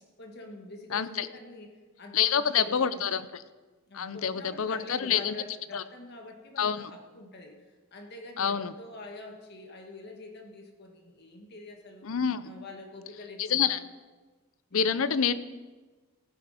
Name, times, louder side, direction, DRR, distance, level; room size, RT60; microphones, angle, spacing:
voice 1, 0.2-1.7 2.0-3.1 3.9-7.7 7.9-12.1 12.4-13.8 14.7-15.1, left 2 dB, 50° left, 2 dB, 1.8 m, -45 dB
voice 2, 0.9-1.3 2.1-3.2 3.9-5.3 5.7-5.8 6.6-6.8 8.4-8.7 12.0-12.4 13.4-13.8 14.7-15.3, left 7 dB, 75° left, 14 dB, 0.6 m, -27 dB
15.0 x 9.7 x 5.0 m, 1.3 s
head